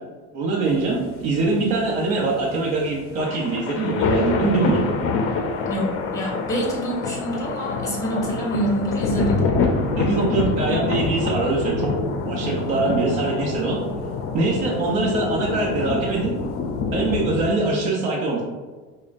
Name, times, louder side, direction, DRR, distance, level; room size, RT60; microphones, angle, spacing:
voice 1, 0.3-4.8 10.0-11.9 12.3-13.8 14.3-16.3 16.9-18.4, right 3 dB, 85° right, -4 dB, 0.8 m, -23 dB
sound 1, 0.7-17.5, left 4 dB, 45° left, 0.5 m, -26 dB
voice 2, 5.7-9.5, right 1 dB, 10° left, -4 dB, 1.1 m, -26 dB
5.2 x 2.2 x 2.5 m, 1.4 s
cardioid pair, 145°, 33 cm